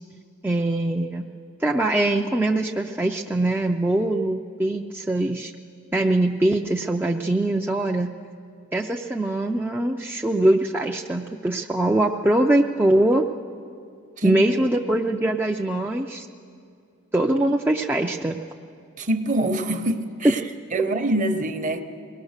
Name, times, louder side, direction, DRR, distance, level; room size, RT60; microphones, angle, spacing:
voice 1, 0.4-1.3 1.6-5.5 5.9-8.1 8.7-13.3 14.2-16.3 17.1-18.4 20.2-20.3, right 1 dB, 10° right, 0 dB, 0.4 m, -22 dB
voice 2, 14.2-14.6 19.0-20.4 20.7-21.8, right 1 dB, 35° right, 8 dB, 0.8 m, -25 dB
22.5 x 18.5 x 6.5 m, 2.4 s
head